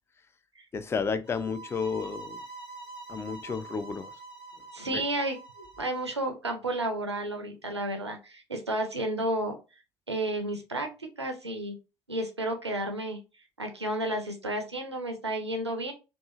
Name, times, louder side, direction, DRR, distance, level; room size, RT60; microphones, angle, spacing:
voice 1, 0.7-2.4 3.1-4.1 4.9-5.0, left 5 dB, 20° left, 0.3 m, -32 dB
sound 1, 1.3-6.2, right 3 dB, 35° left, 0.8 m, -45 dB
voice 2, 4.7-5.4 5.8-9.5 10.1-11.8 12.1-13.2 13.6-15.9, right 1 dB, 90° right, 0.5 m, -32 dB
2.7 x 2.3 x 2.4 m
figure-of-eight pair, 55°, 14 cm